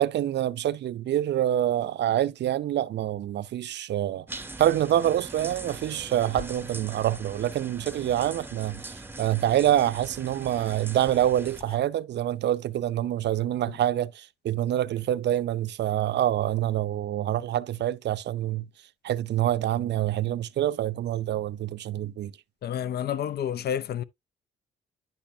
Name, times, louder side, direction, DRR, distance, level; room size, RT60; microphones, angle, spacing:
voice 1, 0.0-18.6 19.0-22.3, right 12 dB, 60° right, 0.6 m, -26 dB
sound 1, 4.3-11.6, right 2 dB, 10° right, 0.8 m, -42 dB
sound 2, 6.3-11.8, left 3 dB, 30° left, 3.1 m, -49 dB
voice 2, 22.6-24.0, left 9 dB, 55° left, 0.6 m, -29 dB
10.5 x 5.6 x 2.7 m
cardioid pair, 90°, 20 cm